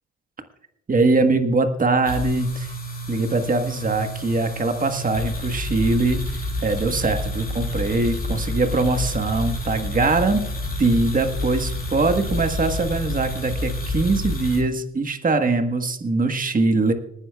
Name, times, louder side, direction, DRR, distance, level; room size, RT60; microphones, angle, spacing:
voice 1, 0.9-2.7 3.1-10.5 10.8-16.9, right 3 dB, 30° right, 6 dB, 1.4 m, -22 dB
sound 1, 2.0-14.6, left 1 dB, 30° left, 5.2 m, -29 dB
26.5 x 9.7 x 2.4 m, 0.81 s
cardioid pair, 90°, 30 cm